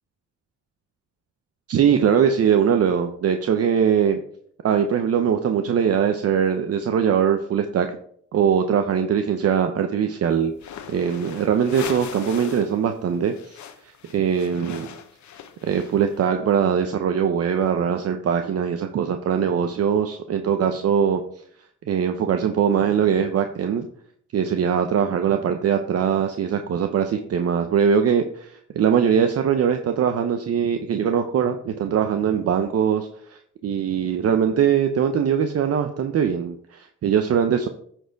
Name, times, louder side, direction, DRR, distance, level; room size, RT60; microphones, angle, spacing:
voice 1, 1.7-4.2 4.6-7.9 8.3-10.5 10.9-13.6 14.1-14.9 15.6-21.2 21.9-23.9 24.3-37.7, right 8 dB, 55° right, 7 dB, 0.7 m, -21 dB
sound 1, 10.5-12.8 13.0-16.2, left 8 dB, 70° left, 1.0 m, -39 dB
9.0 x 4.5 x 4.6 m, 0.62 s
cardioid pair, 90°, 30 cm